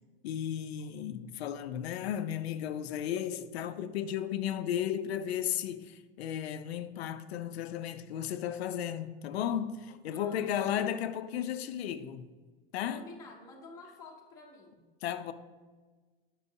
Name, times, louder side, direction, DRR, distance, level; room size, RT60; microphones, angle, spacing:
voice 1, 0.2-12.3 12.7-13.1 15.0-15.3, left 10 dB, 85° left, 0.5 m, -34 dB
voice 2, 10.1-10.9 12.9-14.8, left 3 dB, 10° left, 0.6 m, -50 dB
9.5 x 6.1 x 2.7 m
supercardioid pair, 170°, 31 cm